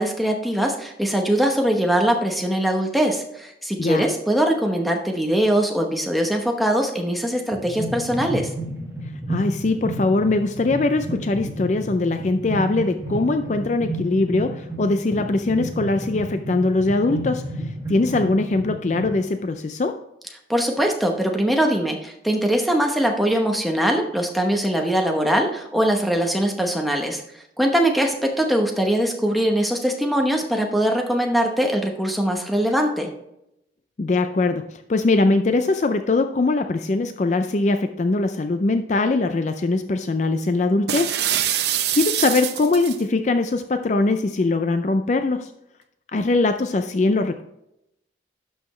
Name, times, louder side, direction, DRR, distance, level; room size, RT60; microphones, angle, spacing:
voice 1, 0.0-8.5 20.5-27.2 27.6-33.1, equal, ahead, 2 dB, 0.9 m, -21 dB
sound 1, 7.5-19.2, right 1 dB, 15° right, 1.8 m, -32 dB
voice 2, 9.3-17.4 17.9-20.0 34.0-41.2 41.9-45.5 46.1-47.4, left 2 dB, 40° left, 8 dB, 0.4 m, -21 dB
sound 2, 40.9-43.0, right 11 dB, 65° right, 0.6 m, -24 dB
11.5 x 5.7 x 3.2 m, 0.82 s
head